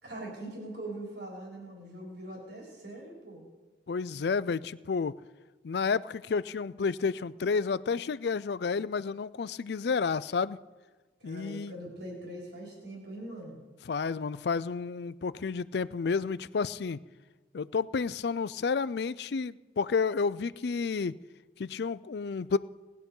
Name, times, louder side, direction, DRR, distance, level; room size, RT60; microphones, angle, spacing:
voice 1, 0.0-3.4 11.2-13.6, right 1 dB, 65° right, -2 dB, 3.9 m, -42 dB
voice 2, 3.9-5.2 5.6-10.6 11.2-11.7 13.9-17.0 17.5-21.2 21.6-22.6, left 5 dB, 60° left, 17 dB, 0.4 m, -30 dB
19.0 x 10.5 x 5.4 m, 1.3 s
head